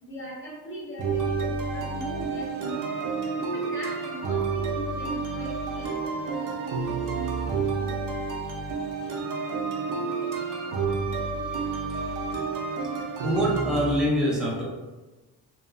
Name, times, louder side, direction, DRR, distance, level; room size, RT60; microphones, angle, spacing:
voice 1, 0.0-3.2 3.5-6.1, right 1 dB, 30° left, -3 dB, 0.8 m, -39 dB
sound 1, 1.0-14.0, right 4 dB, 55° right, 0.5 m, -30 dB
voice 2, 13.2-14.6, equal, ahead, -4 dB, 0.4 m, -24 dB
2.8 x 2.3 x 2.3 m, 1.2 s
wide cardioid pair, 120°, 38 cm